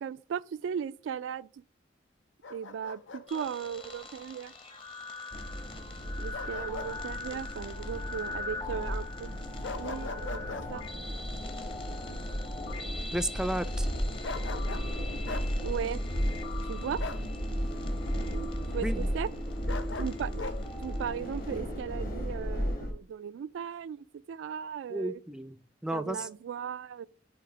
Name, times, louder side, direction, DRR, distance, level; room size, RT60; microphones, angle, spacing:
voice 1, 0.0-1.5 2.5-4.5 6.2-9.3 9.6-10.4 10.7-10.8 15.6-16.0 16.7-17.0 18.7-19.3 20.0-20.3 20.8-25.2 25.9-27.1, right 8 dB, 85° right, 0.3 m, -37 dB
Bark, 2.4-3.5 6.3-6.9 7.3-7.4 9.6-10.7 14.2-14.9 15.3-15.5 17.0-17.3 19.7-20.6, left 4 dB, 80° left, 0.7 m, -40 dB
sound 1, 3.3-21.6, left 3 dB, 30° left, 0.9 m, -43 dB
sound 2, 5.3-22.9, equal, 50° left, 1.7 m, -35 dB
voice 2, 13.1-13.9 18.8-19.1 24.9-25.6 25.8-26.3, right 1 dB, 5° right, 0.3 m, -33 dB
7.2 x 2.8 x 4.8 m
head